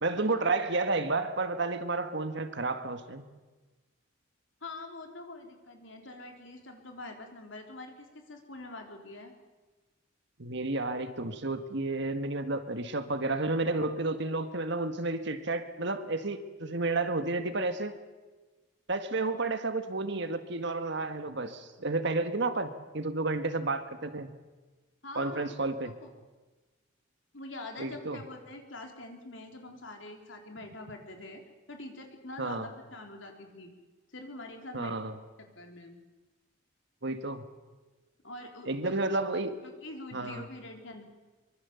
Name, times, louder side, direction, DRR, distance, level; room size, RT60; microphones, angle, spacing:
voice 1, 0.0-3.3 10.4-17.9 18.9-24.3 25.2-25.9 27.8-28.2 32.4-32.7 34.7-35.1 37.0-37.4 38.7-39.6 40.1-40.5, right 3 dB, 60° right, 9 dB, 1.8 m, -31 dB
voice 2, 4.6-9.3 25.0-25.5 26.0-26.1 27.3-31.4 31.7-33.7 34.1-36.0 38.2-39.0 39.6-41.0, left 2 dB, 70° left, 3 dB, 3.8 m, -45 dB
24.0 x 24.0 x 7.1 m, 1.3 s
head